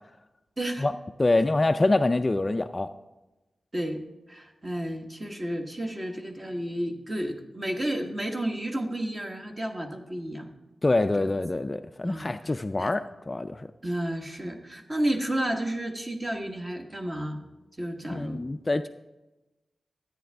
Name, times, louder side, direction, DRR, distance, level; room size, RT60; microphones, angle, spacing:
voice 1, 1.2-2.9 10.8-13.7 18.1-18.9, left 2 dB, 25° left, 9 dB, 0.3 m, -25 dB
voice 2, 3.7-10.5 11.2-11.3 12.0-12.9 13.8-17.4 17.8-18.4, right 1 dB, 25° right, 4 dB, 1.3 m, -32 dB
13.5 x 9.2 x 3.5 m, 1.1 s
wide cardioid pair, 115°, 0 cm